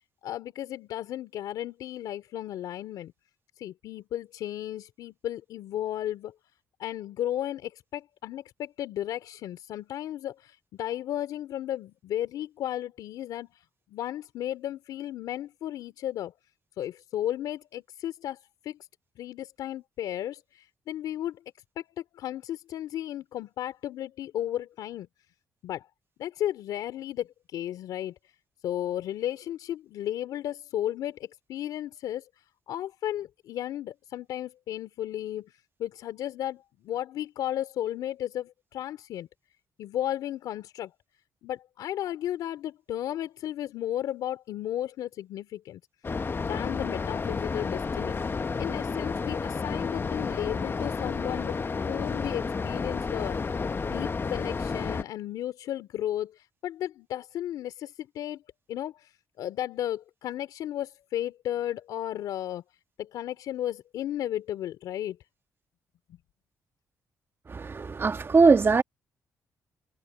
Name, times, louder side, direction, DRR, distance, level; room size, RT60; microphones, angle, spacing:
voice 1, 0.2-3.1 3.6-6.3 6.8-13.6 13.9-16.3 16.8-18.8 19.2-21.4 21.8-25.1 25.6-25.9 26.2-28.1 28.6-32.3 32.7-35.5 35.8-39.3 39.8-40.9 41.4-45.8 46.4-48.2 48.6-51.6 51.9-58.4 58.7-62.6 63.0-65.2, left 12 dB, 80° left, 3.4 m, -34 dB
sound 1, 46.0-55.0, left 4 dB, 35° left, 1.1 m, -31 dB
voice 2, 67.5-68.8, right 4 dB, 35° right, 1.5 m, -21 dB
supercardioid pair, 70°, 7 cm